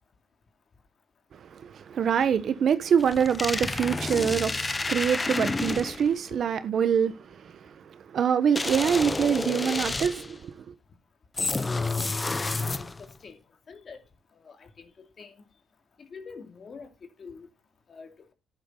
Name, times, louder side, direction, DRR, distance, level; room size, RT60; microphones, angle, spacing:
voice 1, 1.3-10.7, right 7 dB, 60° right, 1.1 m, -25 dB
sound 1, 3.0-6.1 8.6-10.4 11.4-13.1, left 3 dB, 25° left, 0.9 m, -30 dB
voice 2, 12.4-13.4 13.7-14.0 14.4-15.3 16.0-16.9 17.2-17.5 17.9-18.3, left 5 dB, 45° left, 2.6 m, -46 dB
10.5 x 10.5 x 3.8 m
cardioid pair, 90°, 0 cm